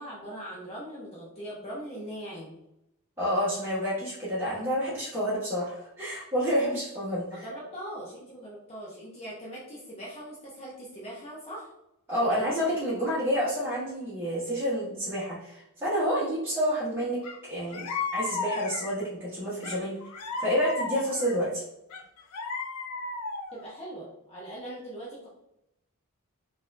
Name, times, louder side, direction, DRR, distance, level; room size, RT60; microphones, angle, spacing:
voice 1, 0.0-2.6 7.3-11.7 12.1-12.5 23.5-25.3, right 1 dB, 30° left, -6 dB, 0.7 m, -41 dB
voice 2, 3.2-7.4 12.1-17.2 17.5-17.9 18.1-20.0 20.4-21.6, equal, 10° right, -12 dB, 1.1 m, -29 dB
sound 1, 17.2-17.4 17.7-19.1 19.6-21.4 21.9-23.7, left 3 dB, 90° left, 0.5 m, -34 dB
3.9 x 2.6 x 2.5 m, 0.83 s
head